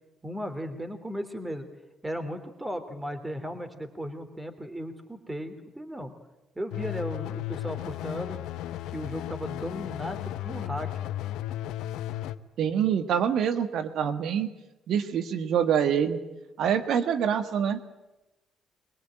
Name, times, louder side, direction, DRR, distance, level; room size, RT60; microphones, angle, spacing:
voice 1, 0.2-1.6 2.0-6.1 6.5-8.4 8.9-10.9, equal, 15° right, 8 dB, 3.2 m, -36 dB
sound 1, 6.7-12.4, left 13 dB, 80° left, 0.9 m, -34 dB
voice 2, 12.6-14.5 14.9-16.2 16.6-17.8, right 8 dB, 70° right, 9 dB, 1.5 m, -25 dB
23.0 x 21.5 x 9.0 m, 0.99 s
supercardioid pair, 65°, 0 cm